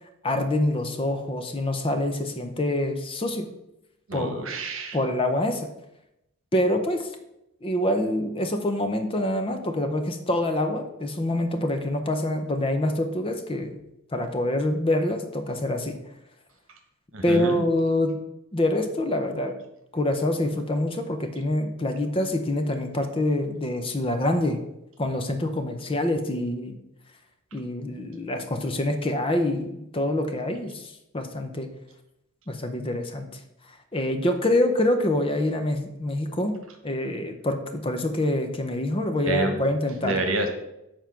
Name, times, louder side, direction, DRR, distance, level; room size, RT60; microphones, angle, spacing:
voice 1, 0.2-3.5 4.1-4.5 4.9-5.7 6.5-7.1 7.6-13.8 14.1-16.0 17.2-18.2 18.5-19.5 19.9-24.6 25.0-26.7 27.5-31.7 32.5-33.4 33.9-40.3, left 1 dB, 25° left, 7 dB, 0.6 m, -26 dB
voice 2, 4.1-5.0 17.1-17.6 39.2-39.6 40.0-40.5, right 2 dB, 60° right, 5 dB, 1.2 m, -28 dB
7.1 x 4.5 x 5.7 m, 0.86 s
head